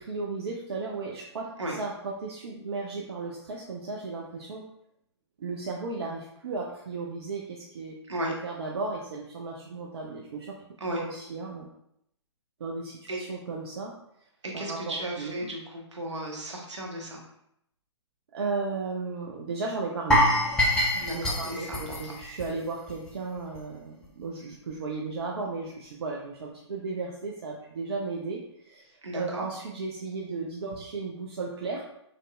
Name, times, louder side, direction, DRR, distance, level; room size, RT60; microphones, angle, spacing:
voice 1, 0.0-4.6 5.4-8.0 8.4-10.5 10.9-11.7 12.6-13.9 14.5-15.3 18.3-20.2 20.9-31.9, right 3 dB, 60° right, -2 dB, 0.5 m, -35 dB
voice 2, 14.4-17.2 21.0-22.1 29.0-29.4, right 1 dB, 75° right, -1 dB, 1.0 m, -35 dB
sound 1, 20.1-23.1 23.4-23.6 24.0-24.1, equal, 5° left, 0.5 m, -25 dB
4.0 x 2.6 x 2.3 m, 0.76 s
figure-of-eight pair, 125°, 15 cm